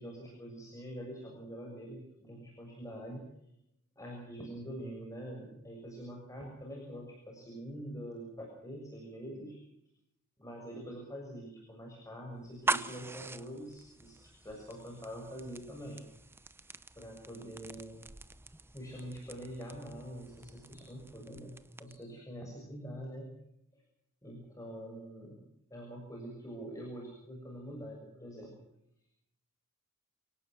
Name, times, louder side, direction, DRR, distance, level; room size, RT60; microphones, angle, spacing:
voice 1, 0.0-3.3 3.9-9.6 10.4-16.0 17.0-18.0 18.7-23.3 23.7-23.8 24.2-28.6, equal, 15° left, 0 dB, 6.8 m, -45 dB
sound 1, 12.4-22.2, right 2 dB, 10° right, 0.8 m, -42 dB
29.0 x 18.0 x 6.2 m, 0.78 s
head